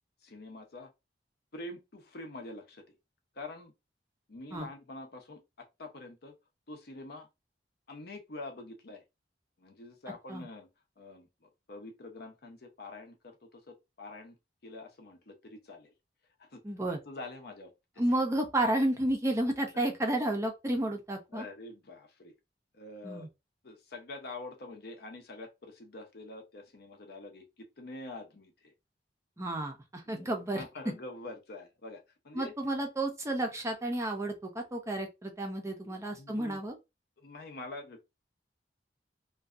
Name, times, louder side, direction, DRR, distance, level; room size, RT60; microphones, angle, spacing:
voice 1, 0.2-0.9 1.5-2.8 3.3-3.7 4.3-5.4 5.8-6.3 6.7-7.3 7.9-9.0 9.6-10.7 11.0-14.4 14.6-15.9 16.4-16.6 17.0-17.7 19.7-19.8 21.3-22.3 22.7-23.3 23.6-28.7 30.1-32.5 35.8-36.6 37.2-38.0, left 2 dB, 60° left, 0.7 m, -46 dB
voice 2, 16.6-17.0 18.0-21.4 23.0-23.3 29.4-30.6 32.3-36.8, right 1 dB, 15° right, 0.5 m, -31 dB
2.6 x 2.2 x 2.4 m
head